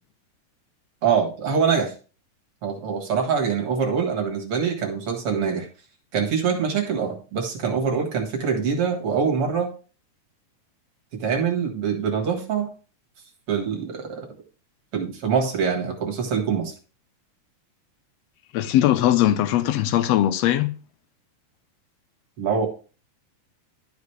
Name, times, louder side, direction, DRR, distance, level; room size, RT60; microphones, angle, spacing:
voice 1, 1.0-1.9 2.6-5.7 6.1-9.7 11.1-12.7 13.5-14.3 14.9-16.7 22.4-22.7, right 6 dB, 50° right, 2.4 m, -24 dB
voice 2, 18.5-20.7, left 12 dB, 75° left, 1.6 m, -20 dB
12.0 x 5.2 x 3.2 m
omnidirectional pair, 3.5 m